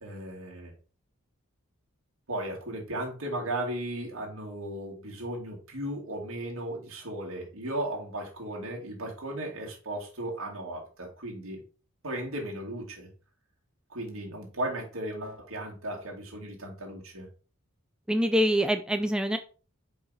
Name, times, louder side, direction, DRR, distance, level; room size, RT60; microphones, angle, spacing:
voice 1, 0.0-0.7 2.3-11.6 12.0-13.1 13.9-17.3, right 1 dB, 70° right, -2 dB, 2.3 m, -36 dB
voice 2, 18.1-19.4, equal, 5° right, 6 dB, 0.3 m, -25 dB
5.4 x 4.7 x 4.0 m, 0.36 s
head